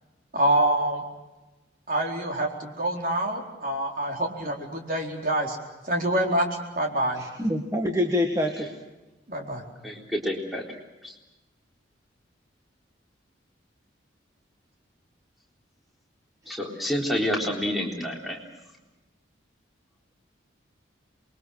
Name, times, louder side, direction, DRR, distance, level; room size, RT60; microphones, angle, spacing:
voice 1, 0.3-1.0 1.9-5.6 5.9-6.5 6.8-7.2 9.3-9.7, right 1 dB, 45° right, 1 dB, 4.3 m, -26 dB
voice 2, 7.2-8.7, left 1 dB, 15° right, 3 dB, 1.8 m, -26 dB
voice 3, 9.8-10.6 11.0-11.1 16.5-18.4, equal, ahead, -1 dB, 3.8 m, -28 dB
28.0 x 22.5 x 6.4 m, 1.1 s
head